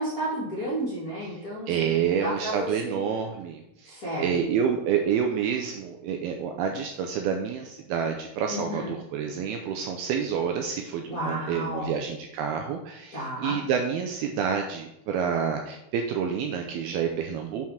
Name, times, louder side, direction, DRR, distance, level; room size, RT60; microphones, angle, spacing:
voice 1, 0.0-3.0 3.8-4.3 8.5-8.9 11.1-12.0 13.1-13.6, right 1 dB, 25° left, -9 dB, 2.0 m, -32 dB
voice 2, 1.3-17.7, right 7 dB, 85° right, 3 dB, 2.3 m, -28 dB
7.6 x 4.5 x 5.7 m, 0.84 s
omnidirectional pair, 4.9 m